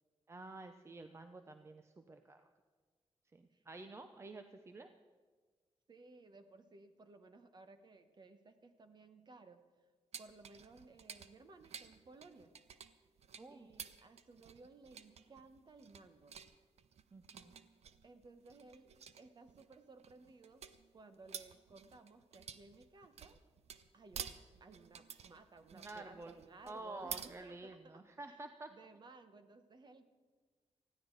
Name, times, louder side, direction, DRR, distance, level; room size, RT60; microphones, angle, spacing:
voice 1, 0.3-2.5 3.3-4.9 13.4-13.7 17.1-17.5 25.7-26.3 26.7-28.7, right 2 dB, 25° right, 7 dB, 0.6 m, -50 dB
voice 2, 5.9-9.6 10.2-12.5 13.5-16.4 18.0-20.7 20.9-23.4 23.9-28.0 28.3-28.4 28.7-30.1, right 3 dB, 40° right, 9 dB, 1.1 m, -59 dB
sound 1, 10.1-27.3, right 7 dB, 75° right, 0.7 m, -51 dB
20.0 x 14.5 x 4.0 m, 1.4 s
wide cardioid pair, 160°, 11 cm